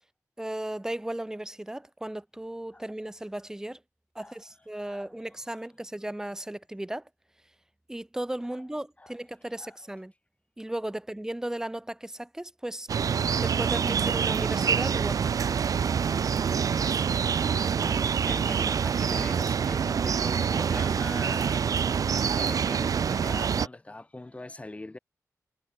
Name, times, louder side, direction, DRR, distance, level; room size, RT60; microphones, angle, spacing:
voice 1, 0.4-3.8 4.1-7.1 7.9-10.1 10.6-12.9 13.4-15.3, right 1 dB, 10° right, 1.4 m, -36 dB
sound 1, 12.9-23.7, right 7 dB, 75° right, 0.7 m, -26 dB
voice 2, 17.5-21.6 22.3-25.0, left 2 dB, 20° left, 6.5 m, -42 dB
wide cardioid pair, 120°, 6 cm